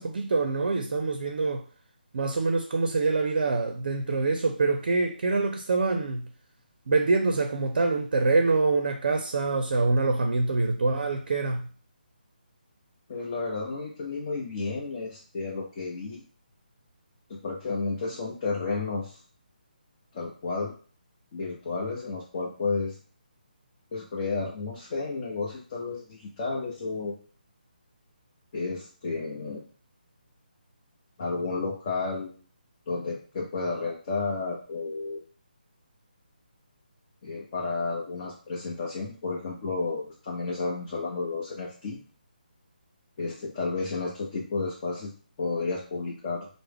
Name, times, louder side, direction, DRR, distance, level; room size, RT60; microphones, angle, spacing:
voice 1, 0.0-1.6 2.1-6.2 6.9-11.6, right 3 dB, 60° right, 6 dB, 0.5 m, -25 dB
voice 2, 13.1-16.2 17.3-19.2 20.1-20.7 21.3-22.9 23.9-27.2 28.5-29.6 31.2-32.4 32.9-35.2 37.2-42.0 43.2-45.1 45.4-46.5, left 3 dB, 35° left, -4 dB, 0.8 m, -32 dB
3.3 x 2.0 x 3.4 m, 0.39 s
figure-of-eight pair, 160°, 5 cm